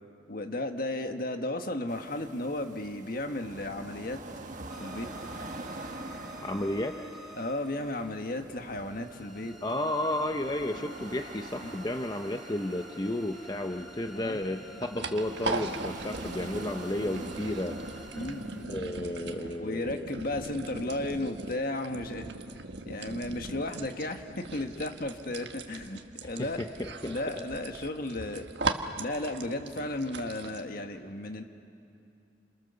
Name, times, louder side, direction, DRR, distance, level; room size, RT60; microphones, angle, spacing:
voice 1, 0.3-4.2 4.8-5.1 7.4-9.5 11.6-11.7 14.2-14.4 18.1-18.8 19.6-22.4 22.8-26.6 27.0-28.5 29.0-31.4, left 1 dB, 55° left, 6 dB, 1.6 m, -34 dB
sound 1, 1.9-18.6, right 2 dB, 45° right, 1.6 m, -45 dB
sound 2, 4.7-19.8, equal, ahead, 1.5 m, -51 dB
voice 2, 6.4-7.0 9.6-17.8 18.7-20.1 26.2-27.2, left 1 dB, 25° left, 5 dB, 0.8 m, -32 dB
sound 3, 14.3-30.6, right 3 dB, 70° right, 1.4 m, -39 dB
29.5 x 28.0 x 7.0 m, 2.7 s
head